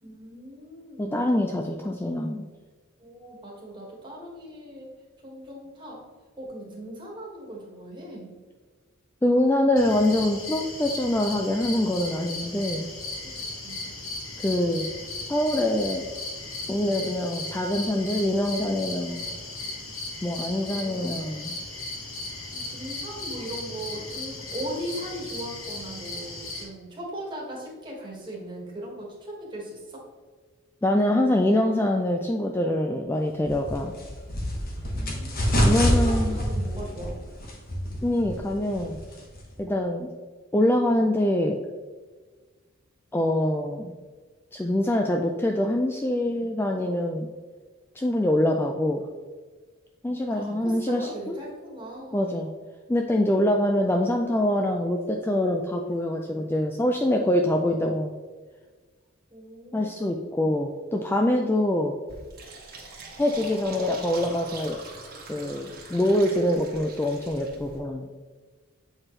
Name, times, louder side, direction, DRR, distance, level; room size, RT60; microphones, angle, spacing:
voice 1, 0.0-1.3 3.0-4.9 5.2-6.0 6.4-8.3 13.2-13.9 20.7-21.6 22.5-30.0 34.9-37.1 50.3-52.4 59.3-60.0, right 1 dB, 25° right, -3 dB, 1.8 m, -39 dB
voice 2, 1.0-2.4 9.2-12.9 14.4-14.9 15.3-16.0 16.7-19.3 20.2-21.5 30.8-33.9 35.6-36.4 38.0-39.0 39.6-40.1 40.5-41.6 43.1-43.9 44.5-47.3 48.0-49.0 50.0-51.4 52.1-52.5 52.9-58.1 59.7-62.0 63.2-64.8 65.3-68.1, left 1 dB, 10° left, 2 dB, 0.3 m, -24 dB
sound 1, 9.8-26.6, left 2 dB, 80° left, 1.6 m, -36 dB
sound 2, 33.4-39.6, equal, 45° left, 1.3 m, -27 dB
Fill (with liquid), 62.1-67.8, right 3 dB, 45° right, 1.5 m, -43 dB
7.9 x 4.5 x 3.2 m, 1.4 s
head